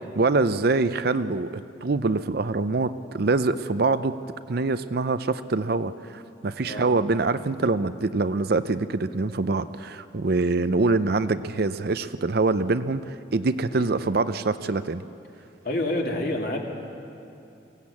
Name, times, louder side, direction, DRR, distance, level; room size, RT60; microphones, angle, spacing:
voice 1, 0.2-4.2 4.5-15.0, right 3 dB, 55° right, 12 dB, 0.6 m, -24 dB
voice 2, 15.6-16.6, left 1 dB, 55° left, 0 dB, 2.6 m, -28 dB
22.5 x 16.0 x 8.5 m, 2.7 s
head